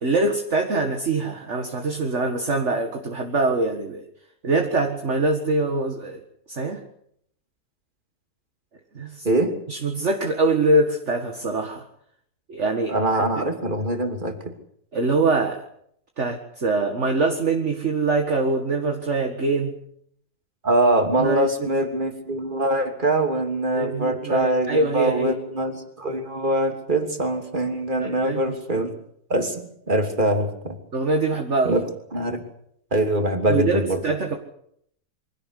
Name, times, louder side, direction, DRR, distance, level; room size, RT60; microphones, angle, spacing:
voice 1, 0.0-4.1 4.4-6.2 6.5-6.8 8.9-9.3 9.7-11.8 12.5-13.5 14.9-15.6 16.2-19.7 21.2-21.7 23.7-25.4 28.0-28.9 30.9-31.8 33.5-34.4, right 3 dB, 50° right, 4 dB, 2.1 m, -24 dB
voice 2, 12.9-14.4 20.6-28.9 29.3-30.8 31.6-31.8 32.1-32.4 32.9-34.0, right 1 dB, 30° right, 5 dB, 3.2 m, -23 dB
24.5 x 17.0 x 8.4 m, 0.70 s
omnidirectional pair, 1.7 m